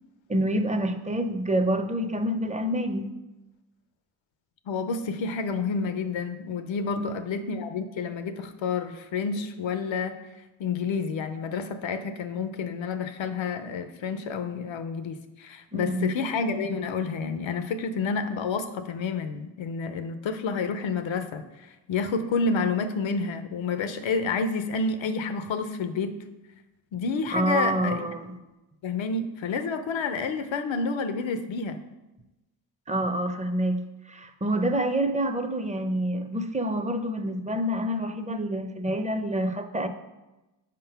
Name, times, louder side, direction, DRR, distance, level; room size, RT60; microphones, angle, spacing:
voice 1, 0.3-3.1 7.0-7.1 15.7-16.1 27.3-28.4 32.9-39.9, right 1 dB, 15° right, 7 dB, 0.6 m, -27 dB
voice 2, 4.7-10.1 10.6-21.4 21.9-26.2 26.9-28.1 28.8-31.8, left 4 dB, 85° left, 10 dB, 0.6 m, -29 dB
5.1 x 3.8 x 5.7 m, 1.0 s
cardioid pair, 55°, 45 cm